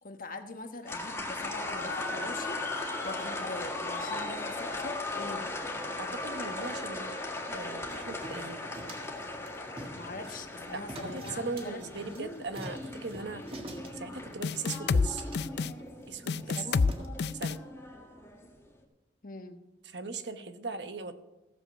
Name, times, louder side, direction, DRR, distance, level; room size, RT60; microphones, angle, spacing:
voice 1, 0.0-5.5 9.9-12.4 16.4-16.9 19.2-19.6, left 2 dB, 50° left, 7 dB, 1.2 m, -43 dB
sound 1, 0.9-18.5, left 2 dB, 15° left, 1.9 m, -38 dB
voice 2, 6.0-7.1 7.5-8.6 10.2-10.3 10.7-10.8 11.1-13.4 13.9-15.2 16.1-16.7 17.4-17.6 19.8-21.1, right 4 dB, 75° right, 9 dB, 1.0 m, -39 dB
sound 2, 7.9-17.1, right 1 dB, 30° right, 1.7 m, -47 dB
sound 3, 14.4-15.1 15.3-15.7 16.3-16.9 17.2-17.6, left 4 dB, 65° left, 0.4 m, -27 dB
15.5 x 7.7 x 6.0 m, 0.97 s
head